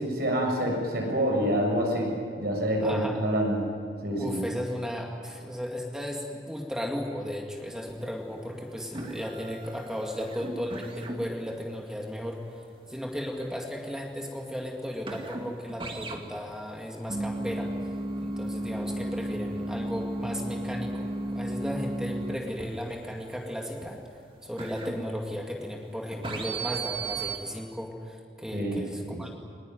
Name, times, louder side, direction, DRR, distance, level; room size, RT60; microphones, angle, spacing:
voice 1, 0.0-3.6 4.0-4.4 28.5-29.2, equal, 60° right, 0 dB, 7.0 m, -27 dB
voice 2, 2.8-3.2 4.2-12.4 12.9-17.7 18.2-24.0 24.4-29.3, equal, 5° right, 0 dB, 2.3 m, -35 dB
sound 1, 7.9-8.3 8.6-25.7 26.1-27.4, right 2 dB, 30° right, 2.2 m, -35 dB
21.5 x 20.5 x 9.4 m, 2.3 s
head